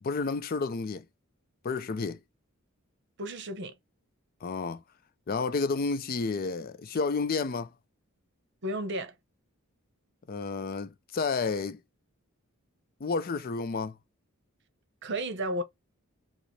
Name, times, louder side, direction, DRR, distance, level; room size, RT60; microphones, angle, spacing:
voice 1, 0.0-1.0 1.6-2.2 4.4-4.8 5.3-7.7 10.3-11.8 13.0-14.0, left 4 dB, 40° left, 0.4 m, -31 dB
voice 2, 3.2-3.8 8.6-9.1 15.0-15.6, right 1 dB, 55° right, 0.7 m, -33 dB
5.0 x 2.0 x 3.0 m
head